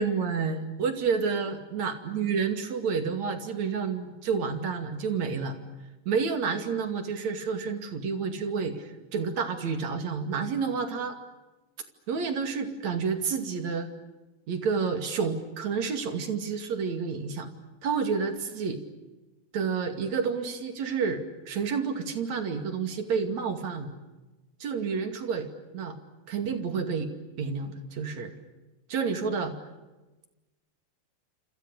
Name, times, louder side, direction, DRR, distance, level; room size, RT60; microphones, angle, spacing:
voice 1, 0.0-5.6 6.1-11.2 12.1-13.9 14.5-17.5 17.8-18.8 19.5-23.9 24.6-25.5 25.7-26.0 26.3-27.1 27.4-28.3 28.9-29.5, right 5 dB, 65° right, 7 dB, 3.8 m, -29 dB
28.5 x 27.0 x 6.7 m, 1.1 s
omnidirectional pair, 3.4 m